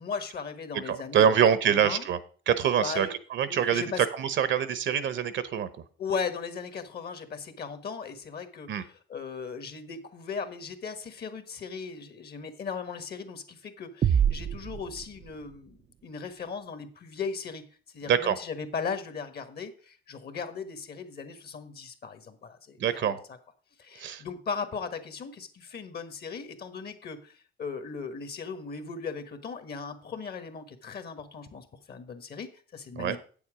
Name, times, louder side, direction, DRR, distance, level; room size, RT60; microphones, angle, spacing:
voice 1, 0.0-2.1 2.8-3.1 3.5-4.0 6.0-23.2 23.8-33.2, left 5 dB, 55° left, 10 dB, 1.4 m, -37 dB
voice 2, 0.9-2.2 2.5-5.7 8.7-8.8 18.1-18.4 22.8-23.2 24.0-24.2 33.0-33.2, right 8 dB, 70° right, 14 dB, 0.9 m, -25 dB
sound 1, 14.0-15.7, right 8 dB, 35° right, 0.4 m, -27 dB
8.5 x 7.1 x 4.9 m, 0.42 s
cardioid pair, 90°, 20 cm